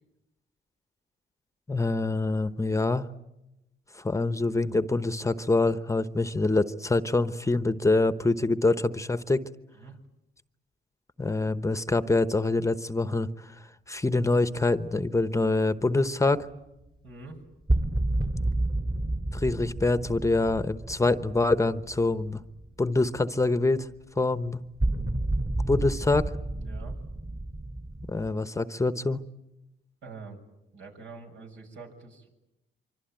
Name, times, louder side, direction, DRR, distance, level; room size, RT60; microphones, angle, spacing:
voice 1, 1.7-3.1 3.9-9.4 11.2-13.5 13.9-16.5 19.3-22.4 22.8-23.9 24.2-24.6 25.7-26.3 28.1-29.2, left 2 dB, 15° left, 12 dB, 1.0 m, -25 dB
voice 2, 17.0-17.4 26.6-27.0 30.0-30.4 30.7-32.3, right 4 dB, 75° right, 3 dB, 7.0 m, -45 dB
sound 1, 17.7-22.8 23.1-23.2 24.8-28.3, right 1 dB, 25° right, 2.2 m, -30 dB
25.5 x 25.0 x 9.1 m, 0.93 s
cardioid pair, 90°, 20 cm